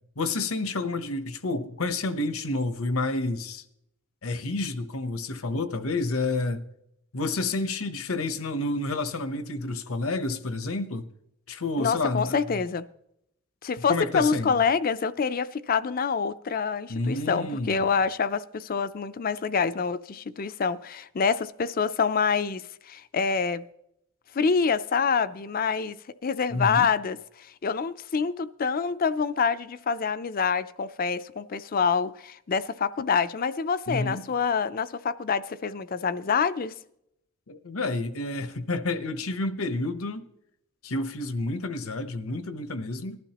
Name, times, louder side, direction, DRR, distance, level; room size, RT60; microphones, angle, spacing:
voice 1, 0.2-3.6 4.2-6.6 7.1-11.1 11.5-12.6 13.9-14.6 16.9-17.9 26.5-26.9 33.9-34.2 37.5-40.3 40.8-43.2, left 2 dB, 70° left, 0.9 m, -29 dB
voice 2, 11.8-12.8 13.6-23.6 24.3-26.0 26.2-36.7, left 5 dB, 40° left, 0.4 m, -26 dB
19.0 x 12.0 x 2.9 m
head